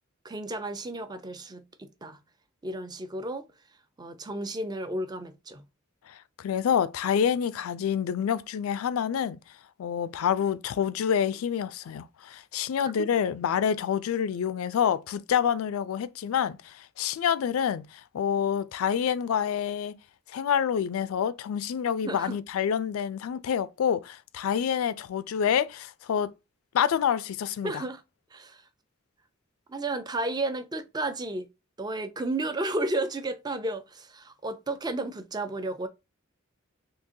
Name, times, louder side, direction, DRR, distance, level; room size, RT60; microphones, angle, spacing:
voice 1, 0.2-2.2 2.6-3.4 4.0-5.6 13.0-13.1 22.0-22.4 27.6-28.0 28.3-28.6 29.7-31.5 31.8-35.9, right 2 dB, 20° right, 0.4 m, -32 dB
voice 2, 6.1-9.4 9.8-19.9 20.3-26.3 26.7-27.8, left 8 dB, 85° left, 0.3 m, -27 dB
3.7 x 2.8 x 2.7 m
head